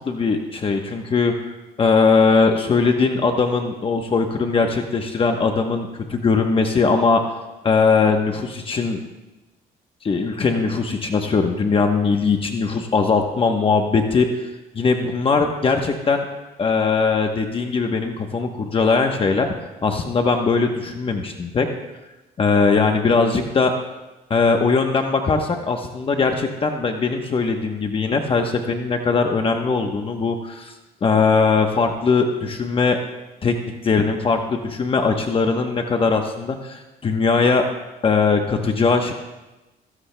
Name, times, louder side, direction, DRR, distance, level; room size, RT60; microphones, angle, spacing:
voice 1, 0.1-1.3 1.8-7.2 7.6-9.0 10.0-16.3 16.6-19.5 19.8-21.7 22.4-23.7 24.3-30.7 31.0-33.0 33.4-33.5 33.8-37.6 38.0-39.1, left 4 dB, 30° left, 4 dB, 1.0 m, -20 dB
21.5 x 16.0 x 2.2 m, 1.1 s
cardioid pair, 110°, 17 cm